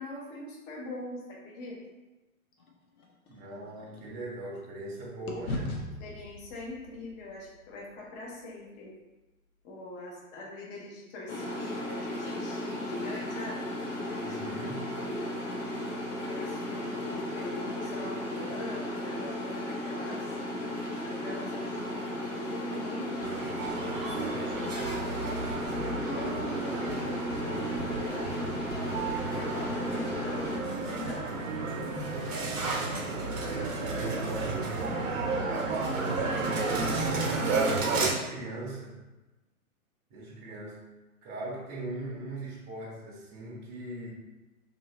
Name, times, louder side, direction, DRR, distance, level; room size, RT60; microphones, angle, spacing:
voice 1, 0.0-1.8 6.0-8.9 9.6-13.6 14.2-14.4 14.9-15.3 16.1-20.4 21.0-21.7 22.0-25.2 25.8-31.5 32.2-32.3, left 1 dB, 30° left, -3 dB, 0.8 m, -42 dB
sound 1, 2.6-4.9 5.3-9.5, left 1 dB, 80° left, 0.7 m, -41 dB
voice 2, 3.3-5.8 14.2-14.9 33.4-36.8 37.9-39.0 40.1-40.8 41.2-44.1, right 1 dB, 30° right, -4 dB, 0.7 m, -40 dB
sound 2, 11.3-30.6, left 1 dB, 55° left, 1.0 m, -35 dB
sound 3, 23.2-38.1, right 3 dB, 65° right, 0.8 m, -32 dB
2.7 x 2.7 x 2.9 m, 1.1 s
figure-of-eight pair, 115°, 43 cm